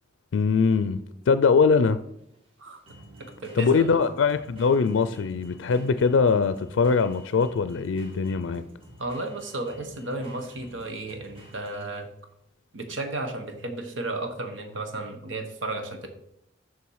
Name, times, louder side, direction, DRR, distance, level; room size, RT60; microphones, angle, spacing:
voice 1, 0.3-2.0 3.6-8.6, left 5 dB, 90° left, 0.4 m, -22 dB
sound 1, 0.6-12.2, right 1 dB, 30° right, 1.9 m, -51 dB
voice 2, 3.4-4.0 9.0-12.1 12.7-16.1, right 2 dB, 85° right, 1.2 m, -33 dB
7.0 x 6.3 x 4.7 m
head